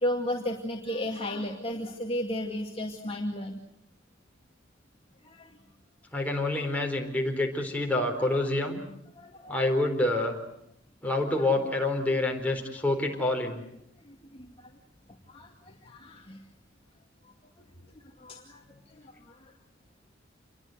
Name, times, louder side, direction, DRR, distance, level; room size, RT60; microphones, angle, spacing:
voice 1, 0.0-3.6 5.2-5.5 8.3-8.4 9.2-9.6 11.4-11.5 14.1-14.5 15.3-16.4 18.2-18.6 18.9-19.5, left 1 dB, 30° left, 1 dB, 2.3 m, -34 dB
voice 2, 6.1-8.8 9.5-10.4 11.0-13.6, left 2 dB, 10° left, 1 dB, 4.3 m, -27 dB
28.0 x 22.0 x 8.0 m, 0.78 s
head